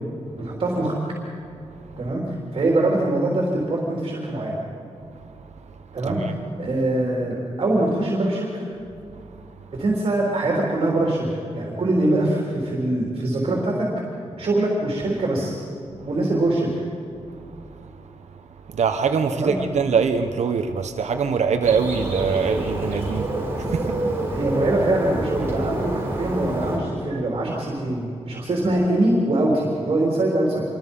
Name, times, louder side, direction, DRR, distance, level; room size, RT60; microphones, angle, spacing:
voice 1, 0.3-1.0 2.0-4.6 5.9-6.2 6.6-8.5 9.7-13.9 14.4-15.6 16.1-16.7 19.3-19.5 24.3-30.6, right 1 dB, 50° right, -3 dB, 3.8 m, -23 dB
voice 2, 18.7-23.3 23.6-24.1, right 6 dB, 80° right, 6 dB, 1.2 m, -23 dB
Bird, 21.6-26.8, right 1 dB, 20° right, 6.8 m, -27 dB
27.0 x 23.5 x 5.6 m, 2.6 s
wide cardioid pair, 160°, 11 cm